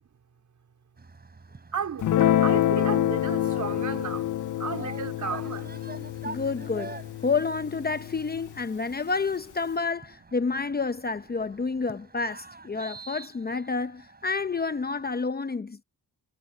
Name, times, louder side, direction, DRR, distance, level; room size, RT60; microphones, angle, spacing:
sound 1, 1.0-15.2, right 3 dB, 25° right, 7.8 m, -47 dB
voice 1, 1.7-5.7, right 6 dB, 50° right, 4.2 m, -34 dB
Guitar, 2.0-8.6, left 11 dB, 55° left, 0.6 m, -27 dB
voice 2, 6.2-6.9 7.2-15.8, left 4 dB, 25° left, 0.8 m, -29 dB
cardioid pair, 105°, 37 cm